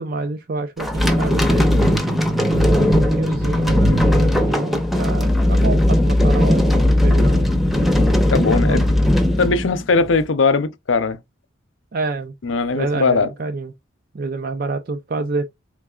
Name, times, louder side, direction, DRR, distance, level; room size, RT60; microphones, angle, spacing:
voice 1, 0.0-1.9 2.5-7.5 8.7-8.8 11.9-12.3 12.7-13.7 14.1-15.4, right 3 dB, 50° right, 0.5 m, -27 dB
sound 1, 0.8-10.2, left 1 dB, ahead, 0.6 m, -17 dB
voice 2, 8.3-8.9 9.4-11.2 12.4-13.3, left 4 dB, 75° left, 0.6 m, -19 dB
4.5 x 3.6 x 2.3 m
head